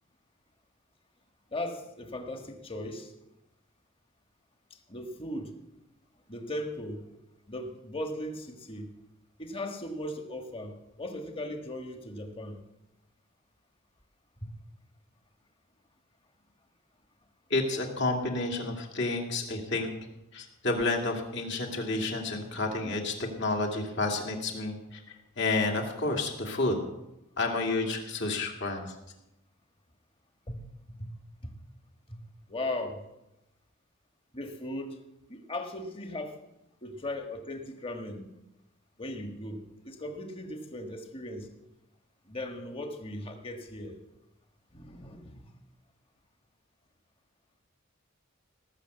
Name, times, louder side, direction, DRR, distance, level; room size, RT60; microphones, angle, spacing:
voice 1, 1.5-3.1 4.9-5.5 6.3-7.0 7.5-8.9 9.4-12.6 14.4-14.5 30.5-31.1 31.4-31.5 32.1-32.2 32.5-33.0 34.3-34.9 35.3-36.4 36.8-38.2 39.0-41.5 42.3-44.0 44.7-45.5, left 1 dB, 25° left, 4 dB, 1.5 m, -38 dB
voice 2, 17.5-19.9 20.3-25.0 25.4-26.8 27.4-28.9, left 2 dB, 55° left, 1 dB, 2.4 m, -30 dB
18.0 x 6.8 x 8.0 m, 0.91 s
head